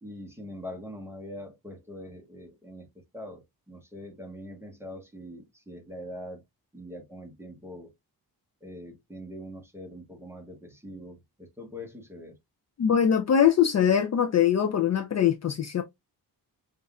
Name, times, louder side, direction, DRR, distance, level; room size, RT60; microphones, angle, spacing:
voice 1, 0.0-6.4 6.7-7.9 8.6-12.4, equal, 5° right, 1.1 m, -43 dB
voice 2, 12.8-15.8, left 8 dB, 45° left, 0.4 m, -22 dB
5.4 x 2.6 x 2.3 m
wide cardioid pair, 170°, 39 cm